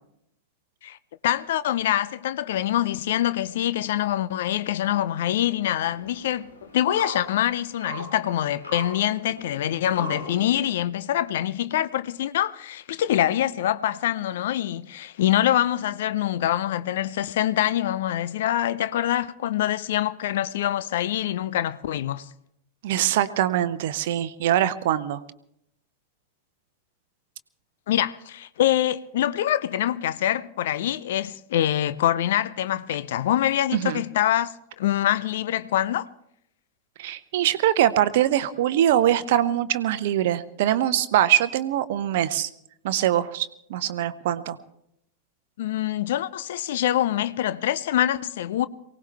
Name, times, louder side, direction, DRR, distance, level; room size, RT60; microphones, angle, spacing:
voice 1, 1.2-6.5 6.7-22.3 27.9-36.1 45.6-48.7, left 12 dB, 55° left, 0.6 m, -25 dB
sound 1, 5.5-10.8, left 1 dB, 75° left, 3.0 m, -39 dB
voice 2, 22.8-25.2 33.7-34.0 37.0-42.5 42.8-44.6, right 11 dB, 55° right, 0.7 m, -23 dB
23.5 x 18.0 x 3.4 m
figure-of-eight pair, 90°, 0 cm